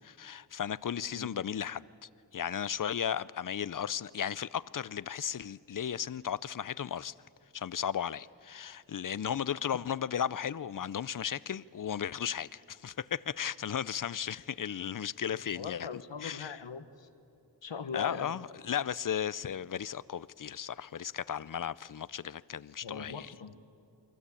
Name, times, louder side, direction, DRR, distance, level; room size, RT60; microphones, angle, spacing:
voice 1, 0.0-1.9 2.3-7.1 7.5-16.6 17.9-23.3, left 8 dB, 45° left, 0.6 m, -35 dB
voice 2, 15.5-17.1 17.6-18.3 22.8-23.6, left 6 dB, 80° left, 1.4 m, -41 dB
29.0 x 22.5 x 8.5 m
wide cardioid pair, 65°, 44 cm